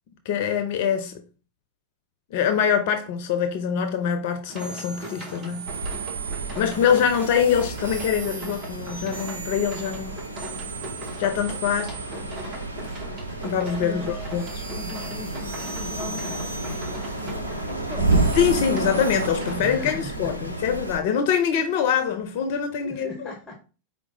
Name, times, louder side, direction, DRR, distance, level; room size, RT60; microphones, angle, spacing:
voice 1, 0.3-1.2 2.3-5.7 6.6-10.2 11.2-11.9 13.4-14.5 18.4-23.3, left 8 dB, 50° left, 0.4 m, -24 dB
sound 1, 4.5-19.9, right 2 dB, 25° right, 0.9 m, -40 dB
sound 2, 4.6-12.9 13.6-19.3, right 5 dB, 60° right, 0.8 m, -40 dB
sound 3, 5.6-21.0, right 2 dB, 85° right, 0.5 m, -31 dB
voice 2, 13.7-14.2 14.6-16.6 17.2-18.3 19.5-20.7 22.8-23.6, left 2 dB, 10° left, 0.7 m, -39 dB
4.7 x 2.0 x 3.8 m
figure-of-eight pair, 90°, 0 cm